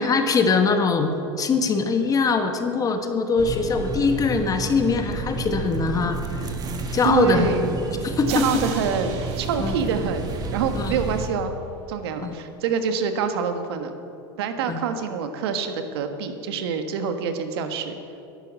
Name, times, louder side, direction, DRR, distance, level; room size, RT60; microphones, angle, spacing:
voice 1, 0.0-6.5 6.9-7.6 8.0-8.5 9.6-9.8 10.7-10.9 12.2-12.3 14.7-14.8, left 4 dB, 25° left, 6 dB, 1.3 m, -22 dB
sound 1, 3.4-11.3, right 2 dB, 30° right, 1.6 m, -30 dB
voice 2, 7.0-7.7 8.3-11.5 11.9-14.0 14.4-18.0, right 6 dB, 70° right, 7 dB, 1.4 m, -26 dB
sound 2, 8.3-10.9, right 7 dB, 50° right, 1.7 m, -38 dB
11.5 x 11.0 x 7.5 m, 2.7 s
hypercardioid pair, 100°, 14 cm